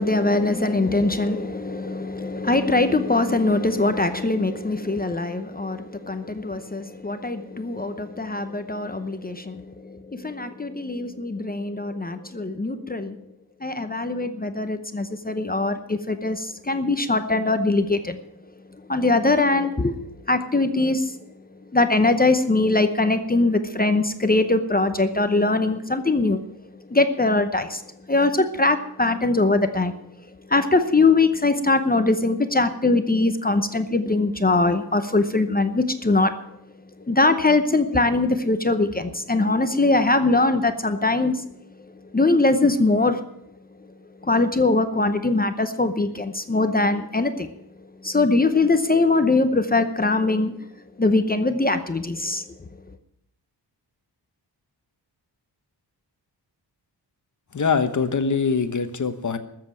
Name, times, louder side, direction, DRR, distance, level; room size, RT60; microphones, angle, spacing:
voice 1, 0.0-13.2 13.6-18.2 18.9-20.0 20.3-21.2 21.7-26.4 26.9-27.8 28.1-30.0 30.5-36.3 37.1-41.5 42.1-43.2 44.2-47.5 48.0-50.6 51.0-52.4, left 2 dB, 20° left, 9 dB, 0.8 m, -22 dB
voice 2, 57.5-59.4, left 5 dB, 45° left, 9 dB, 1.2 m, -23 dB
13.5 x 7.7 x 8.9 m, 0.77 s
wide cardioid pair, 135°, 43 cm